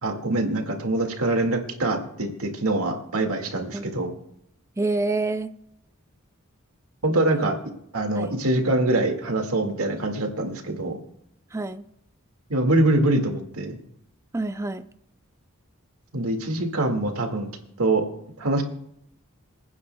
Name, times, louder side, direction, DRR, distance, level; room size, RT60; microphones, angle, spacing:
voice 1, 0.0-4.1 7.0-7.5 7.9-11.0 12.5-13.8 16.1-17.5 17.8-18.0 18.4-18.6, right 2 dB, 90° right, 4 dB, 2.0 m, -24 dB
voice 2, 4.8-5.5 7.3-7.4 8.2-8.4 11.5-11.8 14.3-14.9, right 2 dB, 15° right, 10 dB, 0.4 m, -27 dB
27.5 x 9.7 x 2.2 m, 0.74 s
head